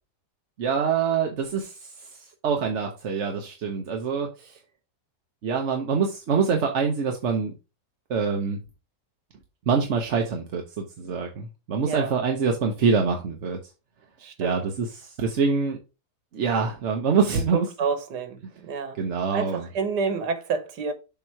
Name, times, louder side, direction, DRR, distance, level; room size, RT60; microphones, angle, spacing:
voice 1, 0.6-4.6 5.4-7.5 8.1-8.6 9.7-13.6 14.4-15.8 16.3-17.7 19.0-19.6, right 5 dB, 50° right, 1.0 m, -25 dB
voice 2, 14.2-14.6 17.3-19.0 19.3-20.9, right 5 dB, 85° right, 1.6 m, -29 dB
7.1 x 3.0 x 4.4 m
omnidirectional pair, 1.7 m